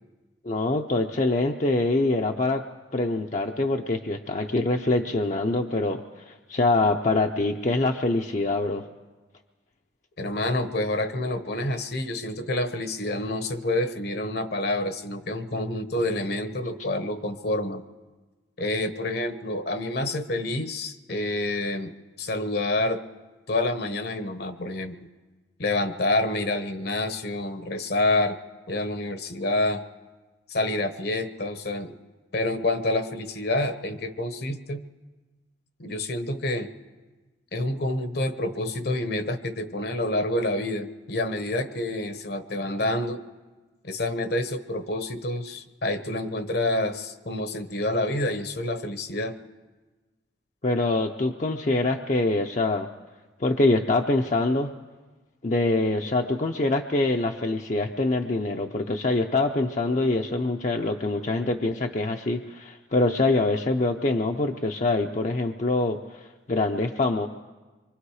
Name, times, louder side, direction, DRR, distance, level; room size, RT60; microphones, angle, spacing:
voice 1, 0.4-2.6 2.9-8.9 50.6-52.9 53.4-54.7 55.4-67.3, left 2 dB, 40° left, 3 dB, 0.7 m, -24 dB
voice 2, 10.2-17.8 18.6-23.0 23.5-25.1 25.6-28.4 28.7-29.8 30.5-32.0 32.3-34.8 35.8-36.7 37.5-43.2 43.8-49.4, left 2 dB, 60° left, 10 dB, 1.1 m, -28 dB
25.5 x 23.5 x 4.9 m, 1.3 s
head